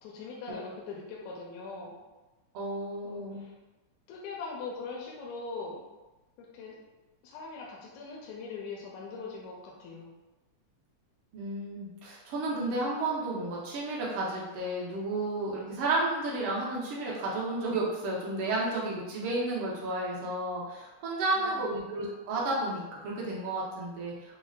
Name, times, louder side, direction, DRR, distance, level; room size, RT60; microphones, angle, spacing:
voice 1, 0.0-2.0 3.0-3.5 4.1-5.8 6.4-6.8 7.2-10.1 21.4-22.0, left 4 dB, 80° left, -2 dB, 1.8 m, -41 dB
voice 2, 2.5-3.4 11.3-24.4, right 2 dB, 75° right, -5 dB, 1.2 m, -32 dB
6.0 x 2.1 x 2.3 m, 1.1 s
omnidirectional pair, 3.4 m